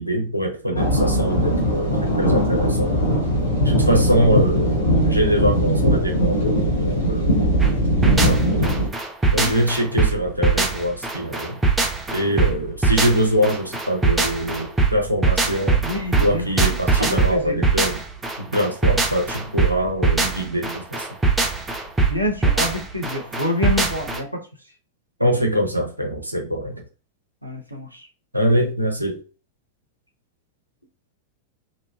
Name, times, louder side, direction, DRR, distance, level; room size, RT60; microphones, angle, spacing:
voice 1, 0.0-2.9 3.6-7.5 8.1-8.8 9.3-11.6 12.1-15.9 16.2-18.0 18.4-21.1 25.2-26.8 28.3-29.2, equal, 85° right, 2 dB, 0.6 m, -23 dB
voice 2, 0.7-1.0 3.4-3.9 9.3-9.5 12.1-12.3 15.8-17.6 22.1-24.5 27.4-28.1, left 2 dB, 90° left, 2 dB, 0.7 m, -28 dB
sound 1, 0.7-8.9, equal, 65° left, 0.9 m, -20 dB
sound 2, 7.6-24.2, right 4 dB, 10° right, 0.6 m, -21 dB
3.0 x 2.4 x 2.3 m, 0.34 s
figure-of-eight pair, 90°, 0 cm